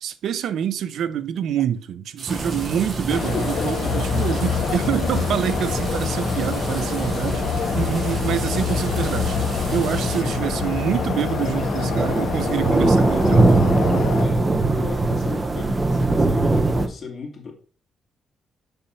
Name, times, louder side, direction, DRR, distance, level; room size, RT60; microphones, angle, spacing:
voice 1, 0.0-3.8 4.1-9.4 9.7-13.7, right 9 dB, 70° right, 0.6 m, -26 dB
sound 1, 2.2-10.2, right 3 dB, 50° right, 2.9 m, -39 dB
sound 2, 2.3-16.9, right 2 dB, 20° right, 0.8 m, -23 dB
sound 3, 3.1-14.2, left 8 dB, 65° left, 0.8 m, -27 dB
voice 2, 3.1-4.2 14.2-17.5, left 5 dB, 40° left, 2.6 m, -35 dB
7.0 x 5.5 x 5.6 m
cardioid pair, 155°, 0 cm